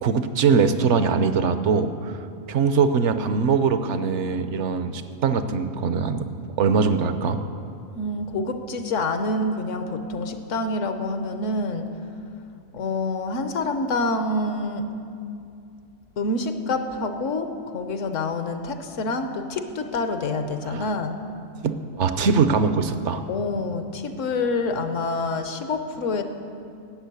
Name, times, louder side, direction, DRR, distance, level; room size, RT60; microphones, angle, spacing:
voice 1, 0.0-2.2 2.5-6.3 6.6-7.4 20.7-20.9 21.6-23.2, right 5 dB, 65° right, 10 dB, 0.9 m, -22 dB
voice 2, 8.0-11.9 12.7-14.9 16.2-21.2 23.3-26.2, left 2 dB, 65° left, 7 dB, 1.2 m, -27 dB
12.0 x 8.5 x 8.3 m, 2.5 s
omnidirectional pair, 1.4 m